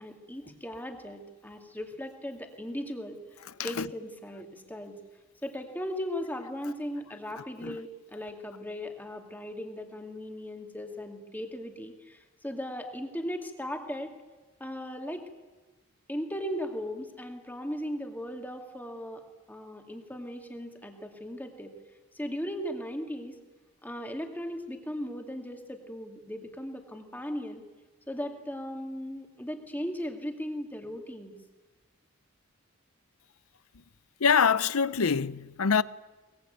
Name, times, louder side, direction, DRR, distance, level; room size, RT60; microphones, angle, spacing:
voice 1, 0.0-4.9 5.4-14.1 14.6-15.2 16.1-19.2 19.5-21.7 22.1-23.4 23.8-27.6 28.1-31.3, equal, 10° left, 2.3 m, -37 dB
voice 2, 3.6-3.9 7.6-7.8 34.2-35.8, left 6 dB, 80° left, 0.7 m, -25 dB
23.0 x 20.5 x 9.2 m
head